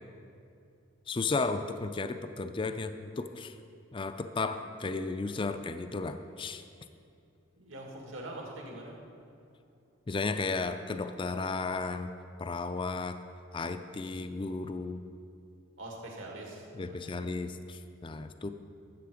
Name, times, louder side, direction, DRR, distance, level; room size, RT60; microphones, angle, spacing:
voice 1, 1.1-3.5 3.9-6.6 10.1-12.1 12.4-13.2 13.5-15.0 16.7-18.5, left 3 dB, 25° left, 10 dB, 0.4 m, -34 dB
voice 2, 7.6-9.0 15.8-17.1, right 1 dB, 80° right, -1 dB, 2.1 m, -43 dB
12.5 x 8.0 x 5.0 m, 2.6 s
head